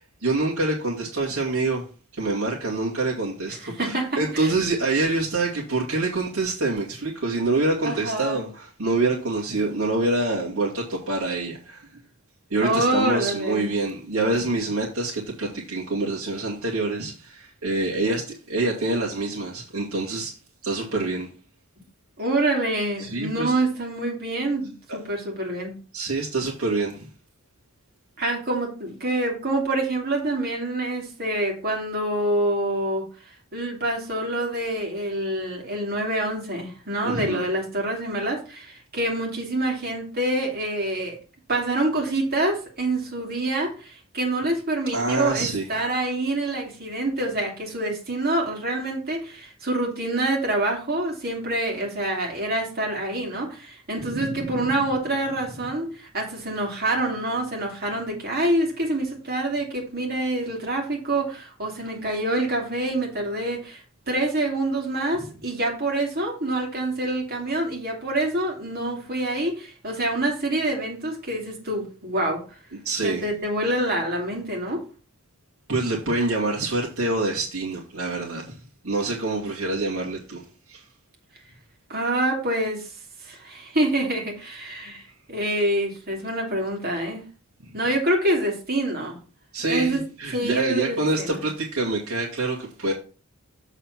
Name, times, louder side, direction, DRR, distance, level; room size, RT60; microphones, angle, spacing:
voice 1, 0.0-1.8 2.1-11.9 12.5-20.3 20.6-21.3 23.0-23.5 24.9-25.0 25.9-27.1 37.0-37.4 44.9-45.7 54.1-54.6 72.8-73.2 75.7-78.6 78.8-80.4 80.7-80.8 89.5-92.9, right 2 dB, 75° right, 2.2 m, -26 dB
voice 2, 3.6-4.5 7.8-8.5 12.6-13.7 22.2-25.7 28.2-33.1 33.5-41.2 41.5-72.4 73.0-74.8 81.9-82.9 83.2-85.0 85.3-87.2 87.7-89.2 89.7-90.0 90.3-91.5, right 1 dB, 45° right, 2.6 m, -26 dB
7.2 x 4.1 x 5.9 m
head